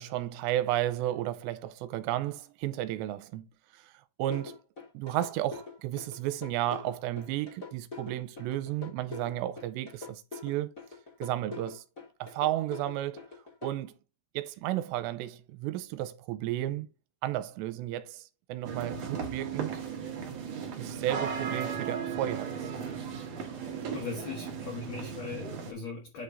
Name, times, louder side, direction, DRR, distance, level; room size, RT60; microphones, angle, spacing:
voice 1, 0.0-3.5 3.7-3.9 4.2-4.6 4.9-10.7 11.2-11.8 12.2-13.3 13.6-13.9 14.3-16.9 17.2-19.8 20.8-22.7, right 13 dB, 85° right, 2.8 m, -33 dB
sound 1, 4.3-13.7, left 4 dB, 35° left, 1.3 m, -43 dB
sound 2, 18.6-25.7, right 6 dB, 65° right, 1.6 m, -36 dB
voice 2, 23.4-26.2, left 4 dB, 85° left, 1.5 m, -40 dB
9.0 x 3.4 x 3.9 m
omnidirectional pair, 5.0 m